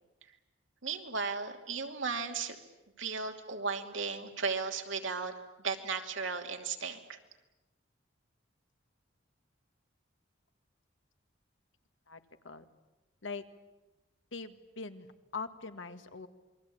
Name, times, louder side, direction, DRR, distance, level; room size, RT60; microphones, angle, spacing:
voice 1, 0.8-2.6 3.0-5.3 5.6-7.2, right 5 dB, 80° right, 4 dB, 2.8 m, -35 dB
voice 2, 14.3-15.1 15.3-16.3, left 4 dB, 80° left, 9 dB, 1.7 m, -41 dB
28.0 x 22.5 x 8.7 m, 1.1 s
head